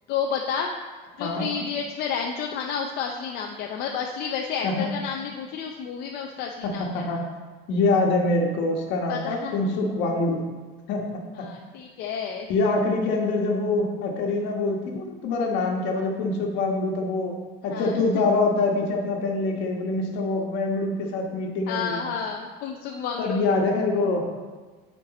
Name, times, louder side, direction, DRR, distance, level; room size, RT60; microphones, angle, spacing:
voice 1, 0.1-0.7 1.2-7.2 9.1-9.5 11.4-12.5 17.7-18.0 21.7-23.4, left 6 dB, 55° left, 1 dB, 0.5 m, -31 dB
voice 2, 1.2-1.5 4.6-4.9 6.6-7.2 7.7-10.4 10.9-11.0 11.4-11.5 12.5-17.3 17.6-22.0 23.2-24.3, left 3 dB, 70° left, 1 dB, 1.3 m, -25 dB
9.6 x 4.5 x 4.1 m, 1.4 s
cardioid pair, 175°, 19 cm